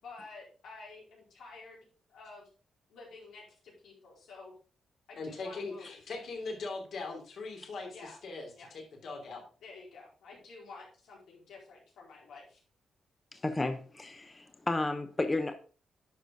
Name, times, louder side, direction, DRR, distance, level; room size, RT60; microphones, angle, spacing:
voice 1, 0.0-1.8 2.1-2.5 2.9-4.5 5.1-6.1 7.9-8.2 8.5-8.7 9.6-12.6, left 3 dB, 90° left, -2 dB, 4.4 m, -50 dB
voice 2, 5.2-7.9 8.2-9.4, left 3 dB, 65° left, 2 dB, 2.9 m, -40 dB
voice 3, 13.3-15.6, left 2 dB, 20° left, 7 dB, 0.7 m, -32 dB
10.5 x 6.1 x 3.7 m, 0.37 s
wide cardioid pair, 140°, 0 cm